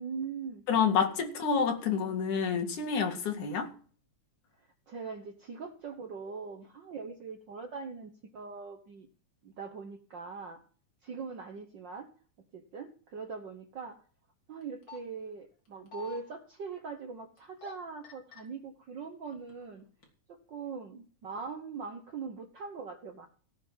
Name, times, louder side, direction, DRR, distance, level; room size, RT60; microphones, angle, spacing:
voice 1, 0.0-0.6 4.9-9.1 9.4-10.6 11.0-12.1 12.5-14.0 14.5-19.8 20.3-23.3, right 5 dB, 60° right, 1.2 m, -41 dB
voice 2, 0.7-3.7, left 6 dB, 90° left, 3.6 m, -28 dB
sound 1, 14.6-15.0 15.6-16.2 17.4-17.7 18.0-18.4 19.1-19.6 20.0-20.1, left 4 dB, 40° left, 3.8 m, -46 dB
17.5 x 6.9 x 5.7 m
omnidirectional pair, 3.4 m